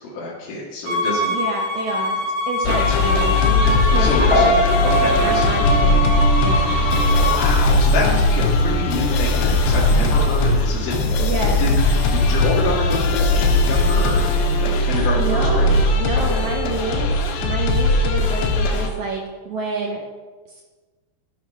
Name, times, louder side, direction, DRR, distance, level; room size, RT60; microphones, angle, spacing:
voice 1, 0.0-1.4 2.7-3.1 3.7-4.5 4.8-5.6 7.1-11.3 11.6-11.7 12.1-14.2 14.6-15.7 16.3-16.4, left 2 dB, 55° left, -5 dB, 2.8 m, -27 dB
Bowed string instrument, 0.9-7.4, left 1 dB, 65° right, 2.4 m, -24 dB
voice 2, 1.3-2.2 2.5-3.4 3.9-4.6 5.2-6.7 11.2-11.6 15.1-17.1 17.4-20.0 20.5-20.6, right 4 dB, 85° right, -1 dB, 1.7 m, -28 dB
sound 1, 2.6-18.9, left 2 dB, 75° left, 3.0 m, -19 dB
Piano, 4.3-7.4 7.7-8.1, right 2 dB, 25° left, 3.2 m, -23 dB
13.0 x 4.9 x 5.8 m, 1.3 s
omnidirectional pair, 5.0 m